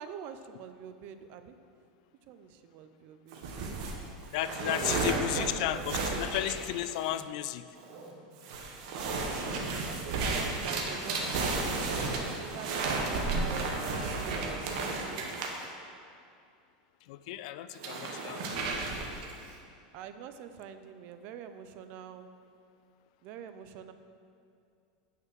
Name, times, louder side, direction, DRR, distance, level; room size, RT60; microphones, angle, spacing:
voice 1, 0.0-1.5 2.3-3.4 4.6-6.3 9.9-11.4 11.8-15.5 19.9-22.3 23.2-23.9, right 8 dB, 45° right, 9 dB, 0.6 m, -45 dB
sound 1, 3.3-7.2 7.8-8.1 8.4-15.6 17.7-19.4, right 3 dB, 60° right, 1.5 m, -33 dB
voice 2, 4.3-7.6 17.1-18.6, left 13 dB, 60° left, 13 dB, 0.4 m, -33 dB
sound 2, 6.9-15.4, right 1 dB, 25° right, 1.1 m, -52 dB
9.4 x 5.8 x 7.6 m, 2.4 s
supercardioid pair, 160°, 4 cm